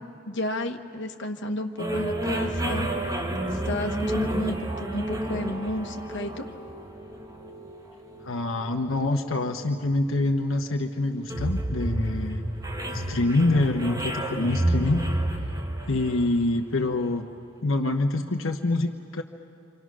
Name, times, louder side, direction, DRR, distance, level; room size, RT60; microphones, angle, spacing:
voice 1, 0.3-2.9 3.5-6.4, left 1 dB, 60° left, 3 dB, 1.4 m, -32 dB
sound 1, 1.8-17.2, right 1 dB, 20° right, 1.9 m, -31 dB
voice 2, 8.2-12.5 12.9-15.0 15.9-17.3 17.6-19.2, left 2 dB, 85° left, 3 dB, 1.1 m, -26 dB
28.5 x 26.5 x 6.2 m, 2.7 s
head